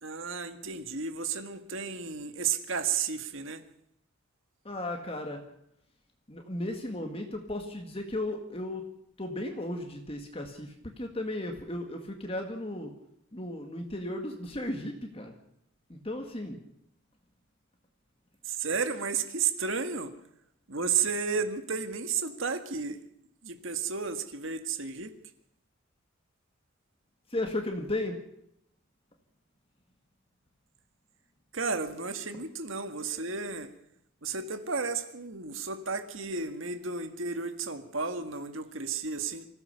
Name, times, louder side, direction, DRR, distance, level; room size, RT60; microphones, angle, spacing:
voice 1, 0.0-3.6 18.5-20.1 20.7-23.0 23.4-25.1 31.5-33.7 34.2-39.5, right 5 dB, 60° right, 8 dB, 1.9 m, -32 dB
voice 2, 4.7-5.4 6.3-8.9 9.2-12.9 13.3-15.3 15.9-16.6 27.3-28.2, left 1 dB, 25° left, 4 dB, 1.9 m, -35 dB
25.5 x 16.0 x 6.9 m, 0.75 s
head